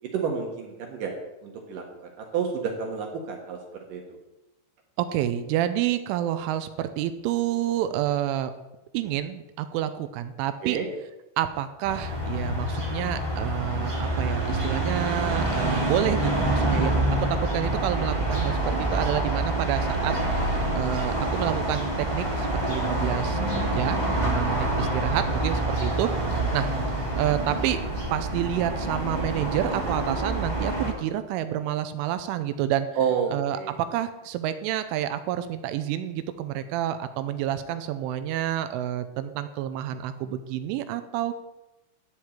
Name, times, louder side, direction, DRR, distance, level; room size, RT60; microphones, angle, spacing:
voice 1, 0.1-1.1 1.4-1.8 2.3-3.6 3.9-4.0 10.6-10.9 33.0-33.7, right 6 dB, 65° right, 2 dB, 2.2 m, -29 dB
voice 2, 5.0-8.5 8.9-10.8 11.4-27.8 28.1-32.9 33.3-41.3, right 11 dB, 80° right, 11 dB, 3.0 m, -29 dB
sound 1, 11.8-30.9, right 1 dB, 20° right, 1.2 m, -27 dB
14.0 x 4.8 x 8.9 m, 0.98 s
omnidirectional pair, 5.8 m